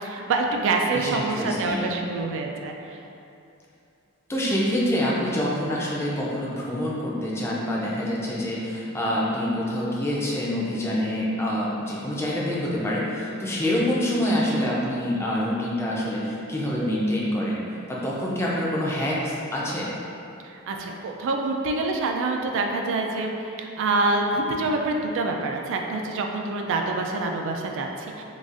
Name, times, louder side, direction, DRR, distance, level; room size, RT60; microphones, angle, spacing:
voice 1, 0.0-3.0 20.5-23.3 23.6-28.2, right 3 dB, 60° right, 2 dB, 0.3 m, -26 dB
voice 2, 0.9-2.0 4.3-17.6 17.9-19.9, left 1 dB, 10° left, -6 dB, 0.4 m, -26 dB
3.9 x 2.4 x 2.4 m, 2.7 s
head